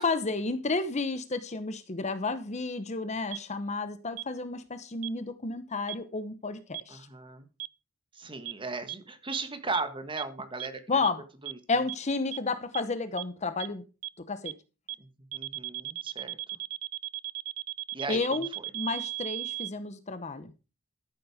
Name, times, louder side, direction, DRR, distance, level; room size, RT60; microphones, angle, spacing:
voice 1, 0.0-7.1 10.9-11.2 11.7-13.8 14.3-14.5 18.1-18.5 18.7-20.5, left 3 dB, 30° left, 0.9 m, -31 dB
sound 1, 3.3-3.4 4.2-4.3 5.0-5.1 5.9-6.0 6.7-6.8 7.6-7.7 8.5-8.6 8.9-9.0 9.3-9.4 9.7-9.8 10.2-10.3 10.6-10.7 11.0-11.1 11.5-11.6 11.9-12.0 12.3-12.4 12.7-12.8 13.2-13.3 13.6-13.7 14.0-14.1 14.5-14.6 14.9-15.0 15.3-19.7, right 23 dB, 85° right, 0.5 m, -35 dB
voice 2, 6.9-7.5 8.1-11.0 11.4-11.6 15.0-16.4 17.9-18.6, right 3 dB, 25° right, 1.6 m, -37 dB
13.5 x 7.7 x 5.0 m
head